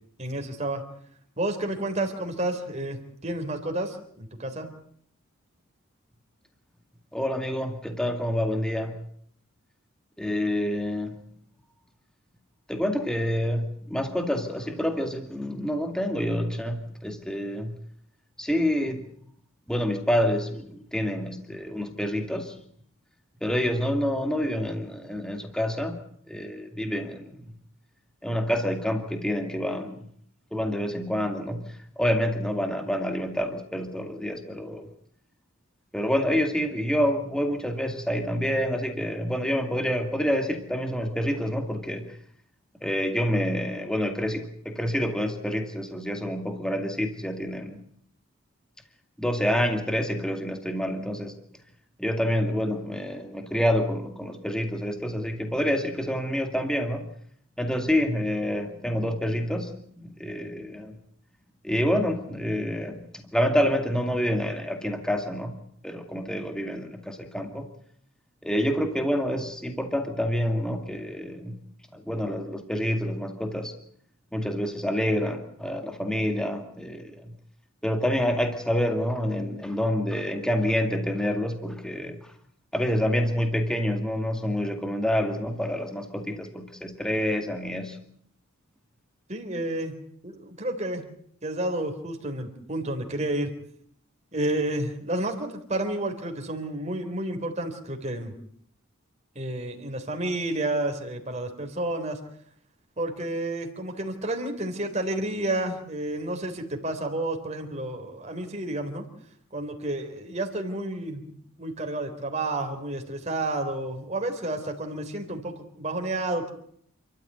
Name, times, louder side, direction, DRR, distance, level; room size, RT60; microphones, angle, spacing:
voice 1, 0.2-0.8 1.4-4.7 89.3-89.9 90.2-91.0 91.4-93.5 94.3-98.3 99.4-102.2 103.0-109.0 109.5-111.3 111.6-116.5, right 1 dB, 30° right, 3 dB, 3.8 m, -30 dB
voice 2, 7.1-9.0 10.2-11.2 12.7-17.8 18.4-19.1 19.7-22.6 23.4-26.0 26.3-27.5 28.2-30.1 30.5-34.9 35.9-42.2 42.8-47.8 49.2-51.3 52.0-57.1 57.6-60.9 61.6-65.6 65.8-67.7 68.4-71.6 71.9-73.7 74.3-77.3 77.8-82.3 82.7-88.0, equal, 5° left, 5 dB, 2.2 m, -27 dB
29.0 x 13.5 x 9.3 m, 0.66 s
head